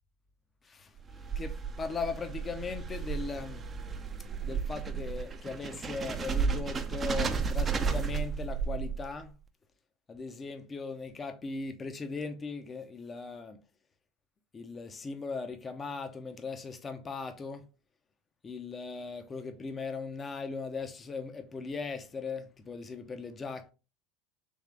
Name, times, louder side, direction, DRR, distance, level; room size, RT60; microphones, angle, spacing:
voice 1, 0.6-0.9 1.3-3.6 4.4-9.3 10.1-13.6 14.5-17.7 18.4-23.7, left 4 dB, 25° left, 0.6 m, -38 dB
sound 1, 1.0-9.3, right 5 dB, 30° right, 0.5 m, -33 dB
3.6 x 3.2 x 3.2 m
hypercardioid pair, 85°, 0 cm